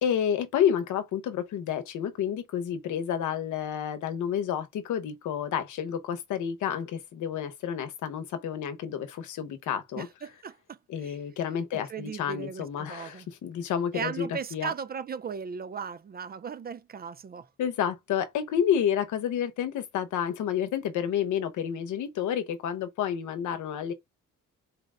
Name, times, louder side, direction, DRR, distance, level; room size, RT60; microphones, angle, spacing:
voice 1, 0.0-6.9 7.2-9.1 9.4-10.1 10.9-13.1 13.4-14.7 17.6-23.9, left 9 dB, 80° left, 0.9 m, -29 dB
voice 2, 9.9-10.8 11.0-11.2 11.9-13.3 13.9-17.5, right 6 dB, 30° right, 0.4 m, -37 dB
4.2 x 2.1 x 3.6 m
cardioid pair, 90°, 30 cm